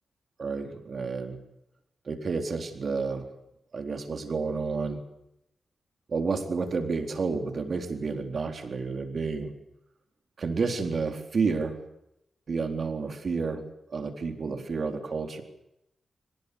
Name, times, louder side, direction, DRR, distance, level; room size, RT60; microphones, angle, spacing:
voice 1, 0.4-1.4 2.1-3.3 3.7-5.0 6.1-9.5 10.4-11.8 12.5-13.6 13.9-15.4, right 4 dB, 60° right, 6 dB, 4.0 m, -30 dB
23.5 x 19.5 x 8.3 m, 0.84 s
cardioid pair, 55°, 0 cm